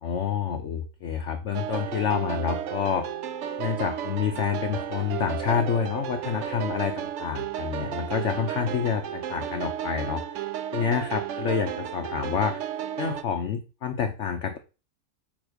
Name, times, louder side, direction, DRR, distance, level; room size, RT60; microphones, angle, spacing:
voice 1, 0.0-3.1 3.6-10.2 10.7-12.6 13.0-14.6, left 7 dB, 60° left, 6 dB, 0.8 m, -28 dB
sound 1, 1.5-13.2, right 10 dB, 75° right, 0.6 m, -33 dB
8.7 x 3.0 x 5.1 m, 0.32 s
omnidirectional pair, 1.9 m